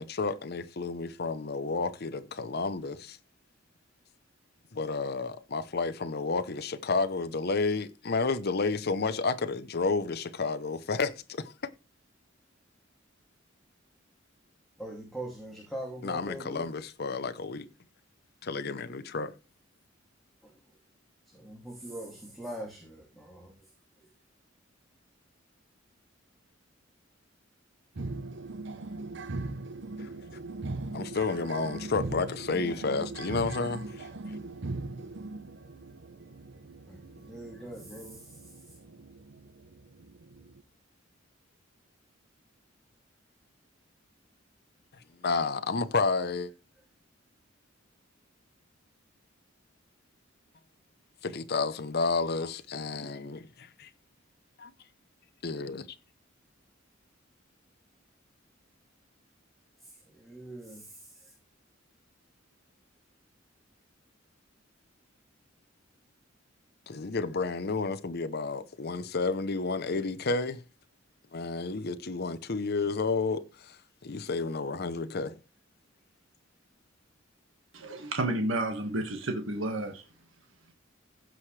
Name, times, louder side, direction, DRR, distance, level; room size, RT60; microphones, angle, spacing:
voice 1, 0.0-3.2 4.7-11.5 16.0-17.7 18.4-19.3 30.0-30.1 30.9-34.1 45.2-46.5 51.2-53.9 54.6-54.7 55.4-55.9 66.9-70.6 71.3-73.8 74.0-75.4, left 4 dB, 55° left, 0.8 m, -31 dB
voice 2, 14.8-16.7 20.4-20.5 21.3-23.5 36.9-38.7 59.8-61.3, right 1 dB, ahead, 2.6 m, -42 dB
sound 1, 28.0-40.6, right 2 dB, 65° right, 0.9 m, -40 dB
voice 3, 77.7-80.0, right 1 dB, 85° right, 1.8 m, -31 dB
15.5 x 6.3 x 3.3 m
head